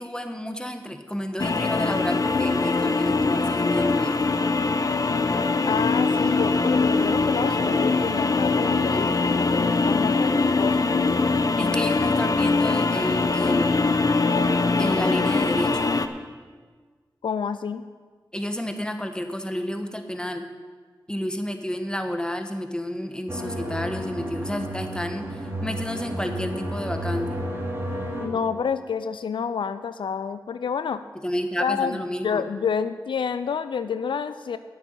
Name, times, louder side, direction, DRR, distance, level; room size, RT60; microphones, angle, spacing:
voice 1, 0.0-4.2 11.6-13.9 14.8-16.0 18.3-20.4 21.1-27.4 31.2-32.5, equal, 10° left, 6 dB, 1.3 m, -30 dB
sound 1, 1.4-16.1, left 3 dB, 45° left, 0.8 m, -22 dB
voice 2, 5.7-10.9 17.2-17.8 28.2-31.0 31.6-34.6, left 6 dB, 80° left, 12 dB, 0.4 m, -29 dB
sound 2, 23.3-28.3, equal, 25° right, 2.5 m, -32 dB
9.2 x 7.1 x 9.0 m, 1.5 s
cardioid pair, 45°, 8 cm